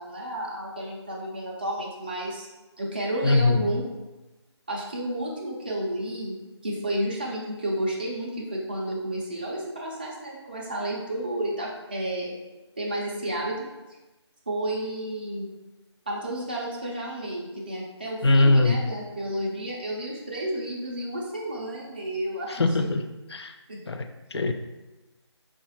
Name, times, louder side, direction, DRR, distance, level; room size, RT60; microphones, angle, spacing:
voice 1, 0.0-2.5 2.8-3.8 4.7-6.4 6.6-12.4 12.8-13.6 14.5-15.5 16.1-22.9 23.7-23.8, right 1 dB, 20° right, -3 dB, 0.4 m, -31 dB
voice 2, 3.2-3.7 18.2-18.8 22.5-23.0 23.3-23.5 23.9-24.5, left 2 dB, 65° left, 7 dB, 0.4 m, -21 dB
4.8 x 2.4 x 2.9 m, 1.1 s
figure-of-eight pair, 165°, 15 cm